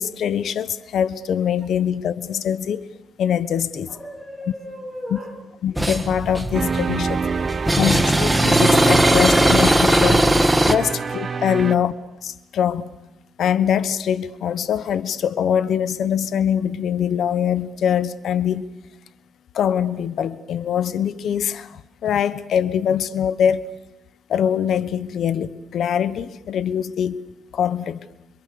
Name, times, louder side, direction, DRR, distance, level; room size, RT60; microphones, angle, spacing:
voice 1, 0.0-2.9 3.2-3.9 5.1-5.2 5.6-7.2 7.8-10.2 10.6-11.9 12.2-12.9 13.4-18.7 19.5-23.7 24.3-27.2 27.5-28.1, left 8 dB, 65° left, 1.0 m, -23 dB
voice 2, 3.9-5.4 7.2-7.9 9.3-9.4, equal, 15° left, 6.3 m, -36 dB
sound 1, 5.8-10.8, right 1 dB, 5° right, 1.8 m, -18 dB
sound 2, 6.5-11.8, right 5 dB, 40° right, 0.9 m, -25 dB
27.5 x 25.5 x 6.9 m
cardioid pair, 90°, 0 cm